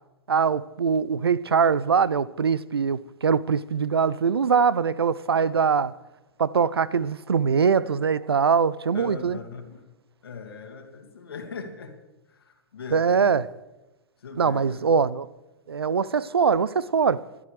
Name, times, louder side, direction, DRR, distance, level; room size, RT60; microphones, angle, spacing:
voice 1, 0.3-5.9 6.4-9.4 12.9-13.5 14.4-15.3 15.7-17.2, right 6 dB, 85° right, 0.6 m, -22 dB
voice 2, 5.3-5.6 8.9-9.9 10.2-12.0 12.3-13.3 14.2-14.8, left 5 dB, 75° left, 2.3 m, -40 dB
26.5 x 12.0 x 3.4 m
hypercardioid pair, 115°, 13 cm